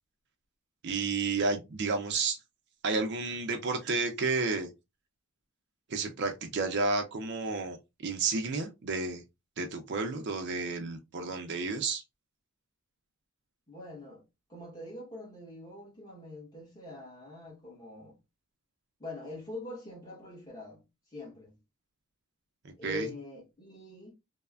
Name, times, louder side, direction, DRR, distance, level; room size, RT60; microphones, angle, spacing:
voice 1, 0.8-2.4 2.8-4.7 5.9-7.8 8.0-9.2 9.6-12.0 22.6-23.1, right 4 dB, 50° right, 0.4 m, -31 dB
voice 2, 13.7-14.2 14.5-18.2 19.0-20.8 21.1-21.6 22.8-24.1, left 2 dB, 20° left, 1.1 m, -44 dB
3.2 x 2.0 x 2.2 m
head